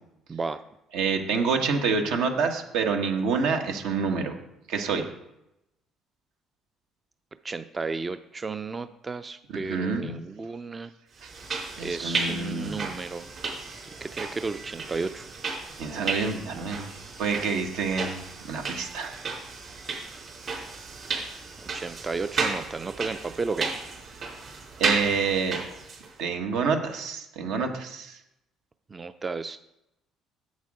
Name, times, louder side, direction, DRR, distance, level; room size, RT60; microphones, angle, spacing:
voice 1, 0.3-0.6 7.4-10.9 11.2-11.4 11.8-13.3 14.0-15.3 21.6-23.8 28.9-29.6, right 4 dB, 30° right, 11 dB, 0.4 m, -33 dB
voice 2, 0.9-4.4 4.7-5.1 9.5-10.2 11.2-11.3 11.8-12.9 15.8-19.2 24.8-25.6 26.2-28.2, right 5 dB, 80° right, 3 dB, 1.3 m, -27 dB
sound 1, 11.2-26.1, right 4 dB, 50° right, 3.8 m, -34 dB
8.2 x 7.7 x 4.8 m, 0.86 s
supercardioid pair, 75°, 0 cm